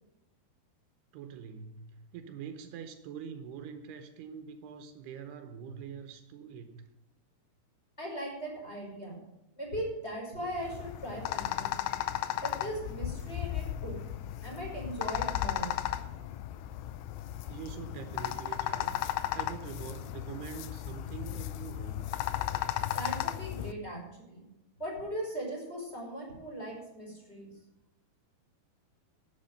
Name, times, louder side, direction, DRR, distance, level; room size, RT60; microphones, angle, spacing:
voice 1, 1.1-6.9 17.5-19.0 19.3-22.1, right 7 dB, 80° right, 8 dB, 2.9 m, -44 dB
voice 2, 8.0-9.2 9.5-11.9 12.4-14.0 14.4-15.7 22.9-24.0 24.3-24.4 24.8-27.5, right 1 dB, 15° left, -3 dB, 5.3 m, -39 dB
sound 1, 10.5-23.7, left 13 dB, 80° left, 2.3 m, -35 dB
12.0 x 7.9 x 6.5 m, 0.95 s
omnidirectional pair, 4.7 m